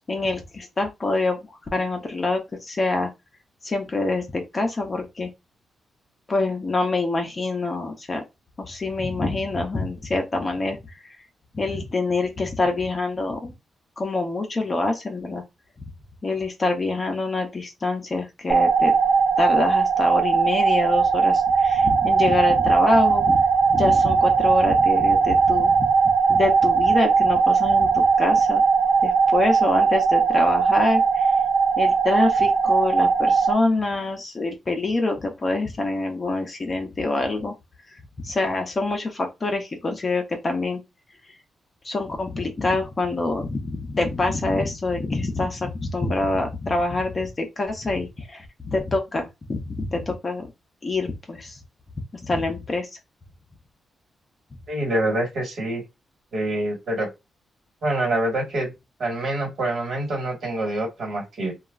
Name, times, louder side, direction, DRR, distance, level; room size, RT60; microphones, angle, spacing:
voice 1, 0.1-3.1 3.6-5.3 6.3-8.2 8.6-10.8 11.0-11.2 11.5-13.5 14.0-15.4 16.2-18.9 19.4-25.9 26.3-28.6 29.0-31.3 31.8-37.6 38.2-40.8 41.8-50.5 50.8-51.6 52.2-52.9, left 2 dB, 25° left, 0.6 m, -25 dB
sound 1, 18.5-33.5, right 5 dB, 30° right, 0.5 m, -19 dB
voice 2, 54.7-55.8 56.3-57.1 57.8-58.7 59.0-61.5, right 1 dB, 55° right, 1.4 m, -26 dB
3.0 x 2.3 x 2.3 m
wide cardioid pair, 175°, 0 cm